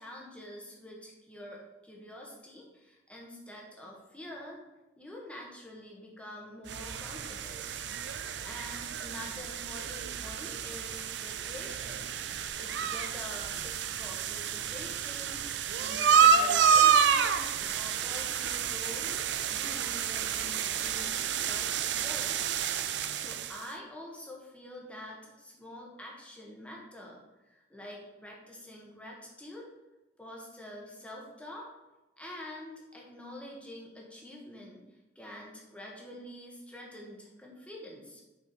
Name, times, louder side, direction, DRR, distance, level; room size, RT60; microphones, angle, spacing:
voice 1, 0.0-4.6 5.0-7.7 8.4-12.1 12.6-15.4 15.8-19.1 19.5-22.6 23.1-27.2 27.5-29.7 30.2-31.7 32.2-34.8 35.1-38.2, left 1 dB, 5° left, -2 dB, 1.4 m, -46 dB
sound 1, 6.7-23.7, right 7 dB, 65° right, 0.4 m, -29 dB
6.0 x 5.7 x 4.5 m, 1.0 s
head